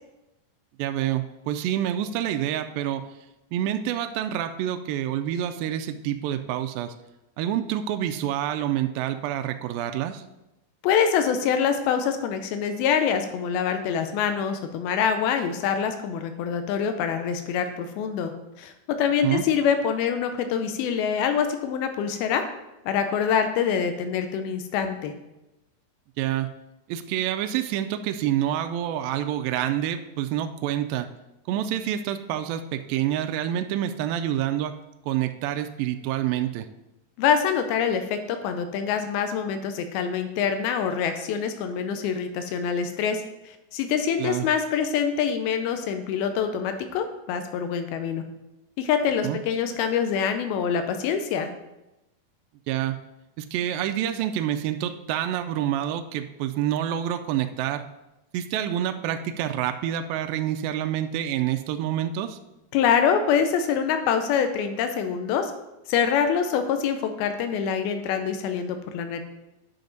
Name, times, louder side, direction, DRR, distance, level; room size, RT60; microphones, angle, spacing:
voice 1, 0.8-3.0 3.5-6.9 7.4-10.2 19.2-19.4 26.2-26.5 26.9-31.1 31.5-34.7 35.1-36.7 44.2-44.5 49.2-49.4 52.7-53.0 53.4-57.8 58.3-62.4, right 11 dB, 80° right, 7 dB, 2.2 m, -27 dB
voice 2, 10.8-18.3 18.6-22.4 22.9-25.1 37.2-48.2 48.8-51.5 62.7-65.5 65.9-69.2, left 7 dB, 85° left, 7 dB, 2.6 m, -25 dB
10.5 x 5.8 x 3.9 m, 0.94 s
omnidirectional pair, 4.3 m